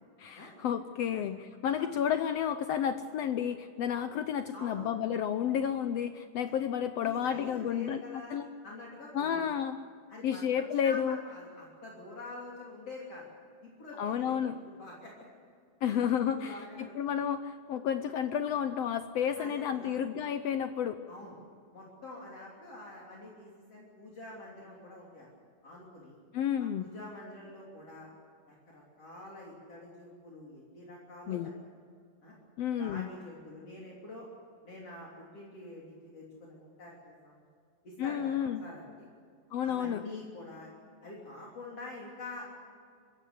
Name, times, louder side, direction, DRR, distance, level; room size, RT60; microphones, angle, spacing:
voice 1, 0.2-8.0 8.3-8.5 9.1-9.8 10.2-11.2 14.0-14.6 15.8-16.6 17.0-21.0 26.3-26.9 31.3-31.5 32.6-33.1 38.0-38.6 39.5-40.0, left 9 dB, 80° left, 9 dB, 1.4 m, -31 dB
voice 2, 4.5-4.9 6.4-6.5 7.0-8.4 8.6-9.4 10.1-13.2 13.6-14.4 14.7-15.1 15.8-16.0 16.3-16.9 19.4-20.0 21.1-21.4 21.7-25.3 25.6-26.2 26.8-28.1 28.5-31.4 32.2-32.3 32.8-34.3 34.6-37.4 37.8-39.1 39.6-40.7 41.0-42.5, left 2 dB, 50° left, -4 dB, 4.2 m, -46 dB
24.5 x 15.5 x 8.4 m, 2.2 s
omnidirectional pair, 3.8 m